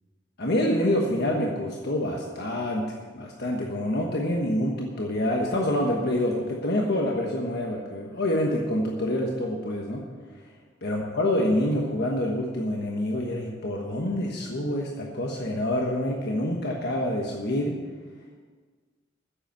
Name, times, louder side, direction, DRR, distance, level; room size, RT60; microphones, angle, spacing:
voice 1, 0.4-10.0 10.8-17.8, left 1 dB, 60° left, 0 dB, 1.3 m, -27 dB
10.0 x 8.1 x 9.0 m, 1.5 s
head